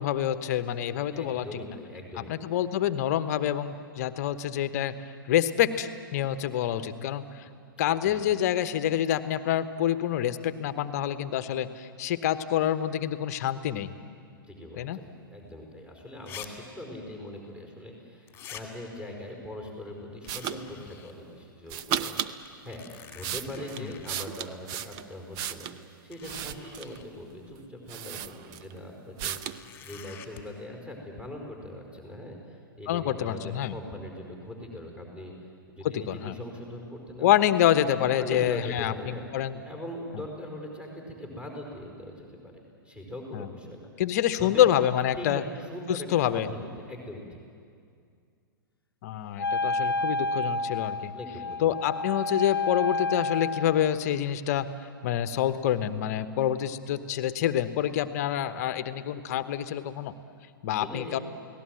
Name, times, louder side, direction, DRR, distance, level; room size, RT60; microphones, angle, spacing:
voice 1, 0.0-1.5 2.3-4.9 5.3-7.4 7.8-13.9 14.8-15.0 23.8-23.9 32.9-33.7 36.1-36.3 37.2-39.6 40.1-40.2 43.3-43.5 44.0-45.4 45.9-46.5 49.0-51.1 51.6-54.7 55.0-60.1 60.6-61.2, left 11 dB, 45° left, 12 dB, 1.1 m, -27 dB
voice 2, 1.1-2.5 7.8-8.2 14.5-22.8 23.1-25.7 26.0-35.3 35.7-37.6 38.1-39.2 39.6-43.9 44.4-44.7 45.1-46.1 46.3-47.4 51.1-51.7 60.7-61.2, left 1 dB, 10° right, 0 dB, 4.7 m, -41 dB
sound 1, 15.5-15.6 16.3-16.5 16.7-16.8 18.3-18.6 20.2-21.1 21.6-21.7 22.4-24.2 25.3-25.4 26.1-27.1 29.4-30.4, left 9 dB, 20° left, 2.5 m, -46 dB
sound 2, 20.3-20.6 21.7-22.4 22.9-25.8 26.2-27.0 27.6-27.7 27.9-28.8 29.2-29.6, right 10 dB, 30° right, 0.8 m, -34 dB
Wind instrument woodwind instrument, 49.4-53.9, left 2 dB, 85° left, 0.9 m, -30 dB
29.5 x 18.5 x 7.8 m, 2.3 s
figure-of-eight pair, 110°, 12 cm